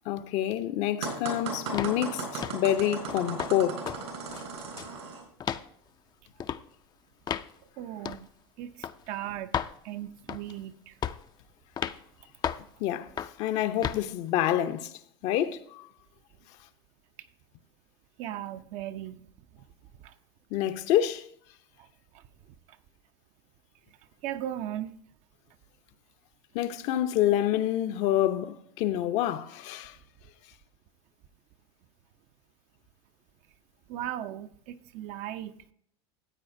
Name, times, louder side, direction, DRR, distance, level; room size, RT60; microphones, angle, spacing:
voice 1, 0.1-3.8 12.8-13.1 13.4-14.9 15.2-15.9 20.5-21.2 26.5-29.9, left 12 dB, 60° left, 0.7 m, -27 dB
sound 1, 1.0-5.2, right 4 dB, 85° right, 3.7 m, -36 dB
sound 2, 1.7-2.0 2.4-2.7 3.1-3.5 3.9-4.0 4.3-5.0 5.4-5.7 6.4-6.6 7.3-7.5 8.1-8.2 8.8-9.0 9.5-9.8 10.3-10.6 11.0-11.3 11.8-12.0 12.4-12.7 13.2-13.4 13.8-14.0, left 8 dB, 30° left, 0.4 m, -33 dB
voice 2, 7.8-8.3 8.6-9.6 9.8-11.0 18.2-19.3 19.5-19.6 20.0-20.1 21.8-21.9 22.1-22.2 24.2-24.9 33.9-35.7, right 12 dB, 55° right, 0.6 m, -37 dB
14.5 x 8.4 x 2.7 m
hypercardioid pair, 90°, 14 cm